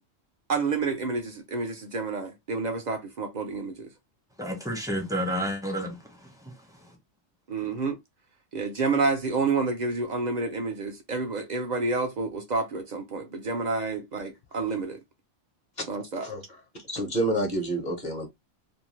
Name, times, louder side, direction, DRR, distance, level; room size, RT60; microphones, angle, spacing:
voice 1, 0.5-3.9 7.5-8.0 8.5-15.0 15.9-16.3, right 4 dB, 55° right, 0.5 m, -29 dB
voice 2, 4.4-7.0, equal, 5° right, 0.5 m, -31 dB
voice 3, 16.8-18.3, right 1 dB, 40° left, 0.9 m, -28 dB
2.5 x 2.2 x 3.1 m
omnidirectional pair, 1.3 m